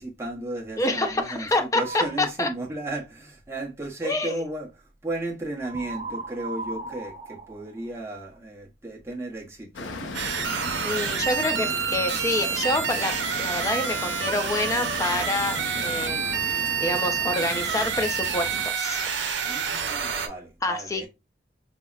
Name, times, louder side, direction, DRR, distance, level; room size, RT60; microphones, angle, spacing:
voice 1, 0.0-10.1 10.8-11.8 19.4-21.1, right 2 dB, 15° right, 0.9 m, -35 dB
voice 2, 0.8-2.5 4.0-4.4 10.8-19.0 20.6-21.1, left 2 dB, 20° left, 0.5 m, -27 dB
sound 1, 1.7-2.3 5.6-8.4, right 2 dB, 30° right, 0.5 m, -37 dB
sound 2, 9.7-18.7, left 3 dB, 85° left, 0.6 m, -37 dB
sound 3, 10.1-20.3, right 7 dB, 80° right, 0.6 m, -28 dB
5.4 x 2.0 x 2.3 m
head